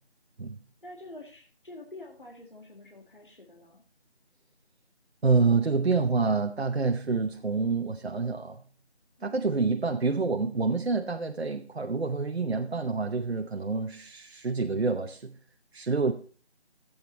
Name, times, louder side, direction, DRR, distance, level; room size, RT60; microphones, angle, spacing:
voice 1, 0.8-3.8 9.2-9.7, left 2 dB, 50° left, 0 dB, 1.6 m, -47 dB
voice 2, 5.2-8.6 9.2-15.3 15.7-16.1, right 4 dB, 65° right, 5 dB, 0.9 m, -27 dB
14.0 x 8.1 x 2.9 m, 0.40 s
figure-of-eight pair, 175°, 33 cm